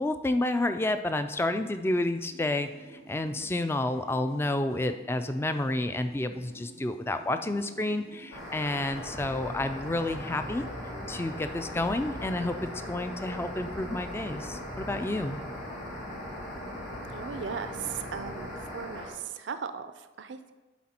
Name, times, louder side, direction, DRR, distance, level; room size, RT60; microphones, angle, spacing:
voice 1, 0.0-10.6 11.1-15.4, left 2 dB, 15° left, 9 dB, 0.3 m, -30 dB
Worst Music Ever, 1.6-9.1, right 1 dB, 55° left, 2.4 m, -52 dB
sound 1, 8.3-19.1, left 1 dB, 85° left, 2.1 m, -40 dB
sound 2, 9.0-18.7, equal, 35° left, 0.7 m, -43 dB
voice 2, 17.1-20.5, right 6 dB, 70° right, 11 dB, 0.5 m, -38 dB
11.5 x 4.2 x 4.3 m, 1.2 s
head